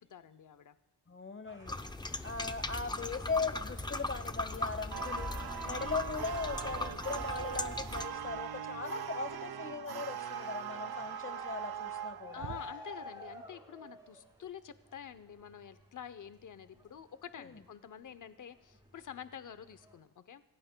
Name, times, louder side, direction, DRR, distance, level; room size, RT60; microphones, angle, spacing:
voice 1, 0.1-0.8 1.7-1.8 12.3-20.4, left 8 dB, 50° left, 12 dB, 0.7 m, -48 dB
voice 2, 1.1-1.8 2.2-12.6 17.4-17.6, left 4 dB, 30° left, 11 dB, 0.9 m, -39 dB
sound 1, 1.5-18.2 18.6-20.0, left 1 dB, 10° right, 4.3 m, -52 dB
sound 2, 1.7-8.1, left 2 dB, 10° left, 0.4 m, -39 dB
sound 3, 4.9-12.7, right 8 dB, 65° right, 0.7 m, -41 dB
27.0 x 16.0 x 2.2 m, 1.1 s
wide cardioid pair, 115°, 40 cm